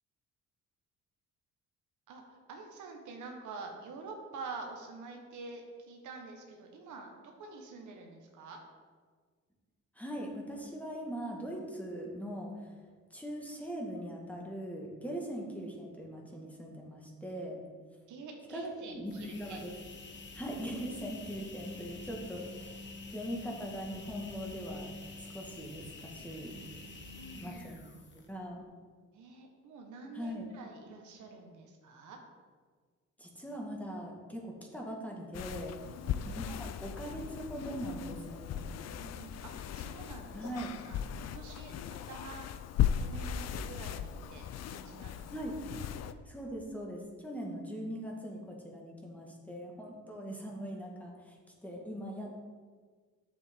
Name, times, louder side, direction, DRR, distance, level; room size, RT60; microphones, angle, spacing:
voice 1, 2.1-8.6 18.1-19.7 27.2-27.9 29.1-32.2 35.8-36.3 38.9-40.5 40.9-42.5 42.7-45.3, right 3 dB, 75° right, 2 dB, 1.3 m, -47 dB
voice 2, 10.0-12.7 13.1-17.6 18.5-19.7 20.4-22.9 23.1-24.9 25.3-26.7 27.4-27.8 28.3-28.6 30.1-30.5 33.2-35.7 36.2-38.7 40.3-40.8 45.3-45.6 46.3-52.4, equal, 5° left, -2 dB, 1.8 m, -41 dB
sound 1, 18.9-28.4, left 3 dB, 40° left, 1.2 m, -47 dB
sound 2, 35.3-46.1, left 9 dB, 60° left, 0.5 m, -37 dB
8.2 x 7.1 x 3.7 m, 1.5 s
cardioid pair, 90°, 30 cm